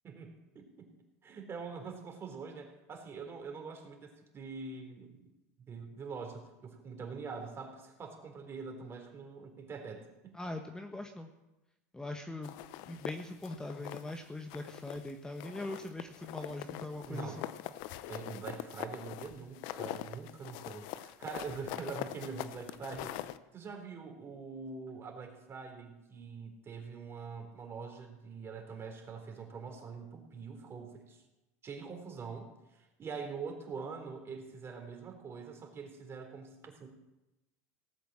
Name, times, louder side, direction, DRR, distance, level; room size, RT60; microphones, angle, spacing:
voice 1, 0.0-0.9 1.2-5.3 5.7-10.3 17.1-17.5 18.1-23.2 23.5-31.2 31.6-36.9, right 5 dB, 30° right, 4 dB, 3.7 m, -44 dB
voice 2, 10.3-11.3 11.9-12.6 12.9-17.5, left 2 dB, 10° left, 5 dB, 1.3 m, -41 dB
sound 1, 12.4-14.2 14.5-15.1 15.4-23.4, left 14 dB, 65° left, 0.8 m, -43 dB
18.0 x 8.4 x 7.5 m, 0.99 s
supercardioid pair, 110°, 8 cm